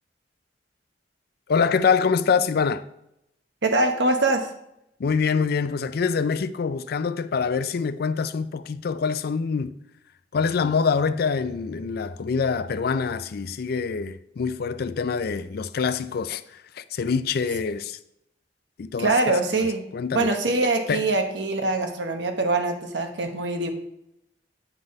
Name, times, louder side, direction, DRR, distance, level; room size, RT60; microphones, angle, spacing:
voice 1, 1.5-2.8 5.0-9.8 10.3-18.0 18.8-19.7 19.9-20.3 20.9-21.0, left 5 dB, 60° left, 0.4 m, -25 dB
voice 2, 3.6-4.5 19.0-19.8 20.1-23.7, right 2 dB, 85° right, 1.0 m, -23 dB
9.0 x 4.1 x 5.2 m
head